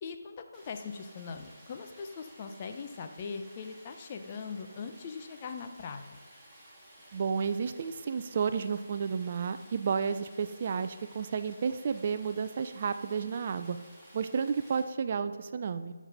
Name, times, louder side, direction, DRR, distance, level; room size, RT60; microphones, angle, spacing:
voice 1, 0.0-6.2, left 5 dB, 30° left, 6 dB, 0.8 m, -41 dB
Stream, 0.5-14.8, right 1 dB, ahead, 2.4 m, -55 dB
voice 2, 7.1-13.8 14.1-15.9, right 6 dB, 35° right, 10 dB, 0.5 m, -32 dB
14.0 x 7.4 x 4.1 m, 1.4 s
figure-of-eight pair, 160°, 0 cm